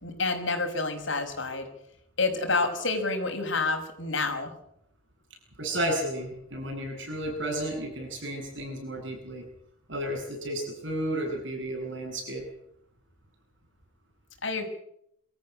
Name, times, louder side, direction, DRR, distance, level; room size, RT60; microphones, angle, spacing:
voice 1, 0.0-1.7 2.2-4.5 14.4-14.7, left 3 dB, 70° left, 5 dB, 5.5 m, -28 dB
voice 2, 5.6-9.4 9.9-12.4, right 1 dB, 65° right, 2 dB, 8.0 m, -32 dB
26.0 x 14.0 x 9.7 m, 0.75 s
head